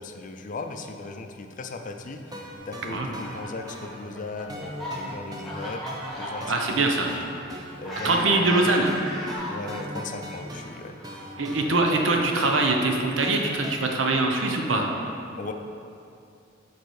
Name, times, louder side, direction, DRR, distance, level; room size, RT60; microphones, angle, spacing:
voice 1, 0.0-6.5 6.9-7.1 7.8-8.8 9.5-11.9 15.3-15.5, left 3 dB, 45° left, 5 dB, 0.4 m, -38 dB
sound 1, 2.3-13.8, right 1 dB, 20° right, 0.7 m, -41 dB
Fowl, 3.2-9.9 10.7-12.7, left 1 dB, ahead, 1.2 m, -37 dB
voice 2, 6.4-7.1 7.9-8.9 11.4-14.9, right 2 dB, 90° right, 2 dB, 0.8 m, -23 dB
6.7 x 4.6 x 4.7 m, 2.5 s
head